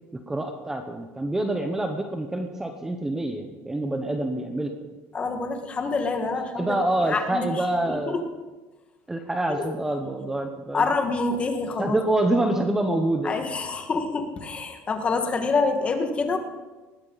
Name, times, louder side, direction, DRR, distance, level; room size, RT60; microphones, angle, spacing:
voice 1, 0.1-4.7 6.6-8.2 9.1-10.9 11.8-13.4, right 1 dB, 10° right, 5 dB, 0.9 m, -26 dB
voice 2, 5.1-6.8 7.1-7.5 7.9-8.2 9.5-9.7 10.7-12.0 13.2-16.4, left 4 dB, 20° left, 5 dB, 1.7 m, -26 dB
19.5 x 15.0 x 4.1 m, 1.2 s
cardioid pair, 160°, 6 cm